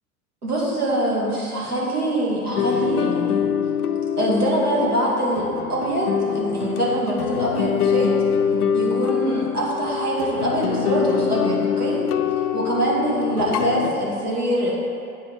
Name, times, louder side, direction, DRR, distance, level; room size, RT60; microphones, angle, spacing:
voice 1, 0.4-3.5 4.2-8.2 8.7-12.0 12.5-14.7, right 1 dB, 85° right, -6 dB, 2.1 m, -24 dB
sound 1, 2.6-13.9, left 7 dB, 75° left, 0.5 m, -24 dB
8.5 x 6.7 x 4.8 m, 2.5 s
figure-of-eight pair, 80°, 45 cm